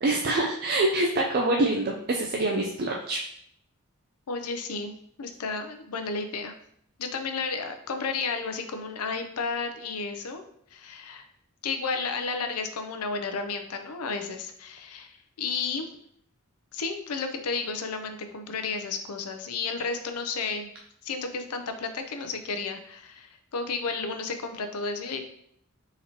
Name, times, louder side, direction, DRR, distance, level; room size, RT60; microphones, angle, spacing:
voice 1, 0.0-3.2, right 2 dB, 45° right, 0 dB, 0.4 m, -25 dB
voice 2, 4.3-4.9 5.2-6.5 7.0-10.4 10.7-11.3 11.6-15.9 16.7-20.7 21.0-25.2, left 4 dB, 85° left, 7 dB, 0.5 m, -32 dB
4.3 x 3.9 x 2.8 m, 0.70 s
head